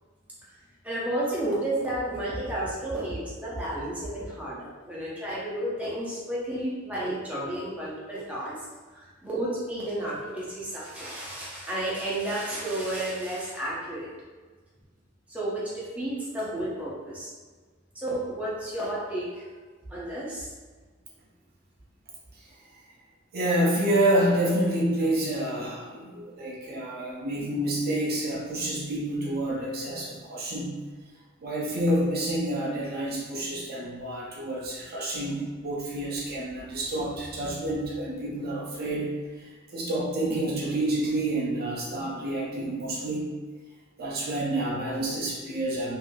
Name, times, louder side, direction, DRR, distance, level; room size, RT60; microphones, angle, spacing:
voice 1, 0.8-8.5 8.9-14.1 15.3-17.3 17.9-19.5 19.9-20.5, right 1 dB, 5° right, -7 dB, 0.7 m, -32 dB
voice 2, 23.3-30.7 31.4-43.3 44.0-46.0, right 1 dB, 50° right, -4 dB, 0.5 m, -28 dB
3.1 x 2.6 x 2.2 m, 1.4 s
head